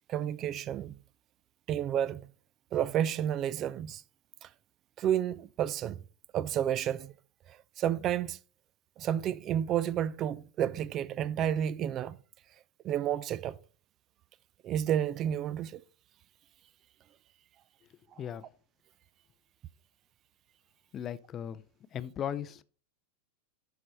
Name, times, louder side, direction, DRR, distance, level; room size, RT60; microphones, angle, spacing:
voice 1, 0.1-0.9 1.7-2.3 2.7-4.0 4.4-4.5 5.0-6.0 6.3-7.1 7.8-8.4 9.0-12.2 12.8-13.6 14.6-15.8, right 10 dB, 30° right, 0.3 m, -30 dB
voice 2, 20.9-21.6 21.9-22.6, left 9 dB, 30° left, 0.5 m, -37 dB
11.5 x 4.3 x 4.1 m
figure-of-eight pair, 90°, 0 cm